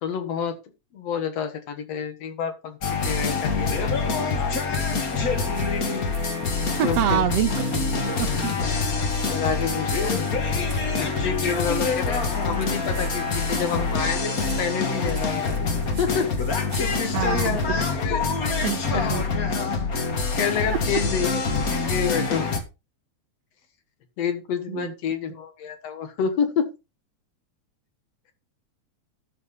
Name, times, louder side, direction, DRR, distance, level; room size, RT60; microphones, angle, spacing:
voice 1, 0.0-0.6 0.9-4.9 6.8-7.2 9.0-10.3 10.9-15.6 16.0-16.3 16.8-18.6 18.9-19.1 20.4-22.5 24.2-26.7, left 7 dB, 65° left, 8 dB, 2.3 m, -29 dB
sound 1, 2.8-22.6, left 4 dB, 40° left, 1.5 m, -25 dB
sound 2, 5.5-17.7, right 4 dB, 40° right, 2.6 m, -46 dB
sound 3, 6.2-16.3, right 1 dB, 10° left, 0.4 m, -41 dB
voice 2, 6.6-7.8 8.2-8.5 17.1-17.8 18.6-19.2 24.7-24.9, right 12 dB, 75° right, 10 dB, 1.6 m, -26 dB
12.5 x 4.4 x 5.4 m, 0.27 s
omnidirectional pair, 3.4 m